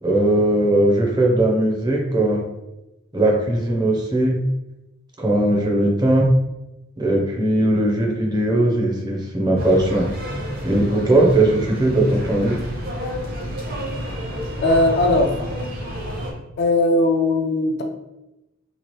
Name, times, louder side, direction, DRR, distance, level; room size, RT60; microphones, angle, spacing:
voice 1, 0.0-2.4 3.1-4.4 5.2-6.3 7.0-10.1 10.6-12.6, right 1 dB, 20° right, -1 dB, 0.5 m, -19 dB
sound 1, 9.6-16.3, equal, 50° right, 0.8 m, -29 dB
voice 2, 14.6-15.4 16.6-17.8, left 2 dB, 55° left, 2 dB, 0.4 m, -18 dB
3.0 x 2.4 x 2.9 m, 0.94 s
head